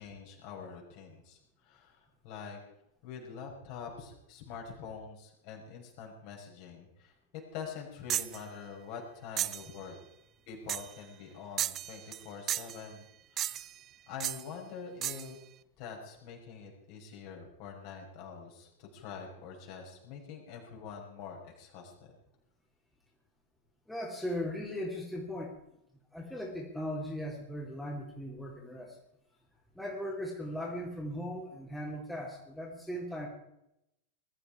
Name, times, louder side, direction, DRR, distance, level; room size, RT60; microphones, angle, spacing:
voice 1, 0.0-2.6 3.0-7.1 7.5-10.0 10.5-13.7 14.1-15.4 15.8-22.1, left 6 dB, 45° left, 0 dB, 5.6 m, -45 dB
sound 1, 8.1-8.4 9.4-9.7 10.7-11.0 11.6-12.2 12.5-12.8 13.4-13.8 14.2-14.4 15.0-15.3, right 12 dB, 30° right, 0.5 m, -34 dB
voice 2, 23.9-25.5 26.1-29.0 29.8-33.3, equal, 5° left, -3 dB, 3.5 m, -38 dB
21.0 x 13.0 x 4.9 m, 0.83 s
figure-of-eight pair, 90°, 0 cm